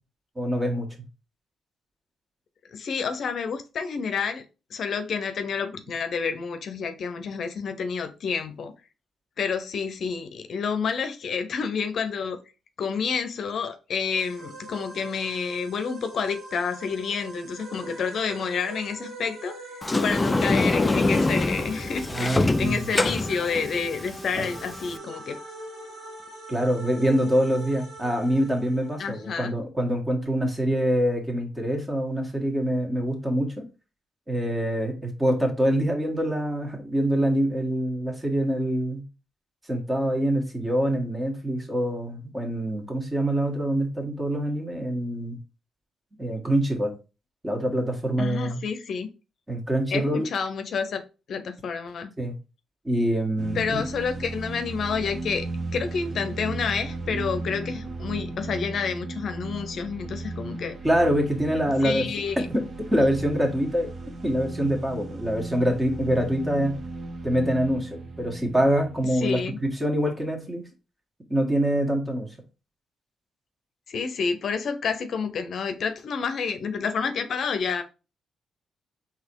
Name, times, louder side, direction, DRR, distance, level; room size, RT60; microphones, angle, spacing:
voice 1, 0.4-0.9 22.1-22.8 24.4-24.5 26.5-33.6 34.3-39.0 39.7-45.4 46.2-46.9 47.4-48.6 49.5-50.3 52.2-52.3 52.9-53.8 60.8-62.0 62.5-62.6 62.9-63.9 64.2-66.8 67.2-70.6 71.3-72.3, equal, 20° right, 1.7 m, -25 dB
voice 2, 2.7-4.4 4.7-8.7 9.4-12.4 12.8-19.6 20.0-25.4 29.0-29.5 48.2-49.1 49.9-51.0 51.3-52.1 53.5-55.4 55.7-60.8 61.8-62.5 69.1-69.6 73.9-77.8, left 6 dB, 65° left, 0.6 m, -29 dB
sound 1, 14.1-29.5, right 2 dB, 65° right, 1.2 m, -42 dB
Sliding door, 19.8-25.0, left 2 dB, 25° left, 0.4 m, -25 dB
sound 2, 53.4-69.7, right 2 dB, 50° right, 0.8 m, -36 dB
4.0 x 2.9 x 4.6 m
supercardioid pair, 60°, 0 cm